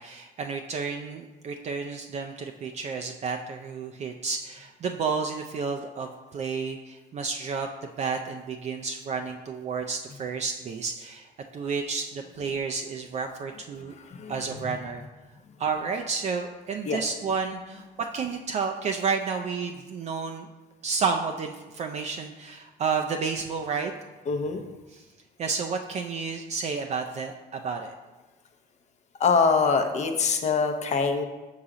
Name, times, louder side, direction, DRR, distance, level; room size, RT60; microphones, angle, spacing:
voice 1, 0.0-7.7 8.0-13.9 14.3-15.0 15.6-20.5 20.8-23.9 24.9-25.0 25.4-27.9, right 5 dB, 40° right, 4 dB, 0.4 m, -31 dB
voice 2, 13.5-14.8 16.9-17.0 24.3-24.6 29.2-31.2, left 5 dB, 40° left, 6 dB, 0.7 m, -25 dB
5.6 x 3.8 x 4.8 m, 1.2 s
cardioid pair, 110°, 17 cm